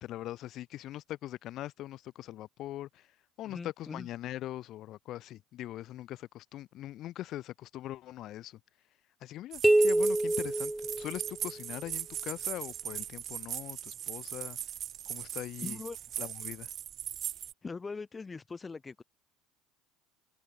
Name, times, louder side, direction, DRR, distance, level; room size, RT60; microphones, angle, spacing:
voice 1, 0.0-3.1 3.4-8.6 9.2-14.6 15.1-15.8 16.2-16.7, left 14 dB, 55° left, 4.2 m, -41 dB
voice 2, 3.4-4.1 15.6-16.0 17.6-19.0, left 4 dB, 20° left, 3.1 m, -41 dB
sound 1, 9.5-17.5, right 10 dB, 45° right, 0.8 m, -39 dB
sound 2, 9.6-11.6, right 1 dB, 5° right, 0.4 m, -26 dB
open air
supercardioid pair, 115°, 0 cm